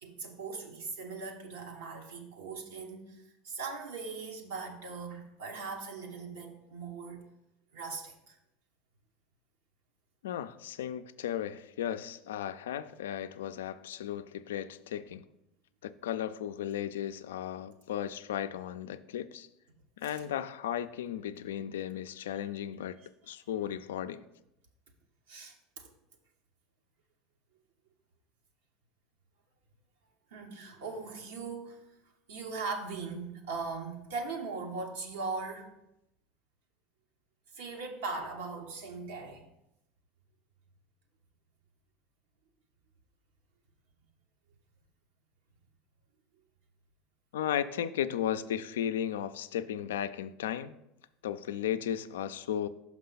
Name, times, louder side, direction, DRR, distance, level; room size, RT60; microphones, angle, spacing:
voice 1, 0.0-7.2 7.7-8.4 20.0-20.2 22.4-22.5 23.6-23.7 25.3-25.9 30.3-31.8 32.3-35.7 37.5-39.5, right 4 dB, 85° right, 1.0 m, -40 dB
voice 2, 10.2-15.2 15.8-19.5 20.0-23.0 23.3-24.2 47.3-50.8 51.2-52.7, left 10 dB, 85° left, 0.3 m, -35 dB
5.8 x 5.7 x 3.9 m
hypercardioid pair, 95°, 0 cm